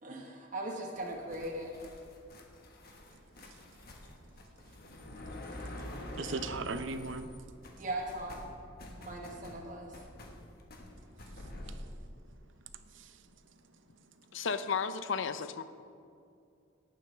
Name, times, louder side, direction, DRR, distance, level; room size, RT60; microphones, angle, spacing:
voice 1, 0.0-1.7 7.8-8.5 9.0-9.9, right 1 dB, 40° right, 1.4 m, -39 dB
sound 1, 1.0-7.4 7.6-11.8, left 1 dB, 50° left, 1.4 m, -47 dB
voice 2, 6.2-7.3 11.3-11.9 12.9-13.2, right 3 dB, 70° right, 0.6 m, -39 dB
voice 3, 14.3-15.6, left 6 dB, 70° left, 0.6 m, -33 dB
18.0 x 9.1 x 3.4 m
head